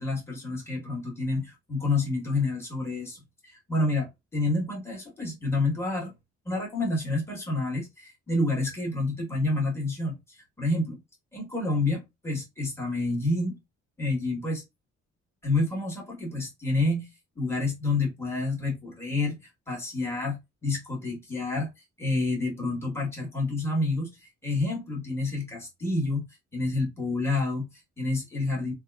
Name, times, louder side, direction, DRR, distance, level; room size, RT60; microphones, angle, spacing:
voice 1, 0.0-6.1 6.4-11.0 11.3-13.6 14.0-14.6 15.4-17.1 17.4-19.4 19.7-21.7 22.0-26.2 26.5-28.7, left 2 dB, 10° left, 1.2 m, -29 dB
2.8 x 2.3 x 2.2 m
cardioid pair, 90°, 30 cm